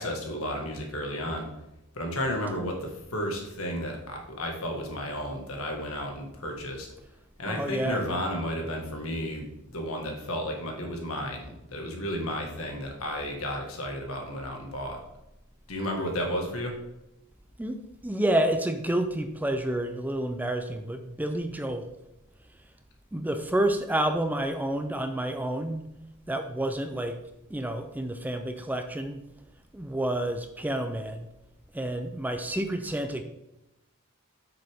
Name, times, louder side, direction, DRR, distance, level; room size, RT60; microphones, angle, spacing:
voice 1, 0.0-1.5 1.9-6.9 7.4-9.4 9.7-15.0 15.7-16.8, equal, 70° left, 2 dB, 1.8 m, -32 dB
voice 2, 7.5-8.0 17.6-21.9 23.1-25.8 26.3-27.2 27.5-29.2 29.7-31.3 31.7-33.2, right 1 dB, 10° right, 7 dB, 0.4 m, -29 dB
8.1 x 6.6 x 3.6 m, 0.90 s
head